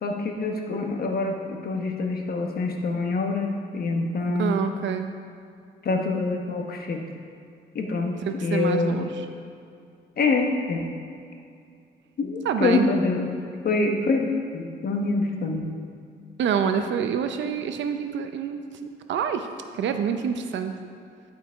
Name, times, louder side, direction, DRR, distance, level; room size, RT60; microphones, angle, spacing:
voice 1, 0.0-4.6 5.8-7.0 7.7-8.1 8.4-9.1 10.2-10.9 12.2-13.3 13.6-15.6, left 3 dB, 50° left, 2 dB, 1.1 m, -25 dB
voice 2, 4.4-5.1 8.3-9.1 12.4-12.9 16.4-19.5 19.7-20.8, right 7 dB, 70° right, 7 dB, 0.6 m, -27 dB
11.0 x 4.8 x 4.6 m, 2.4 s
cardioid pair, 90°, 20 cm